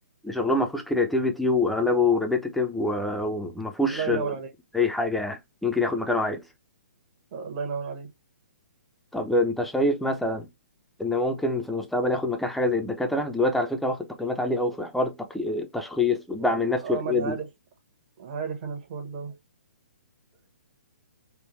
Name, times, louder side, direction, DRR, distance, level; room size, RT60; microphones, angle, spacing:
voice 1, 0.2-4.3 4.7-6.4 9.1-10.5 11.0-17.4, left 2 dB, ahead, 0.5 m, -25 dB
voice 2, 3.8-4.5 7.3-8.1 16.5-17.5 18.2-19.4, right 5 dB, 40° right, 1.2 m, -33 dB
3.6 x 2.2 x 3.1 m
hypercardioid pair, 140°, 8 cm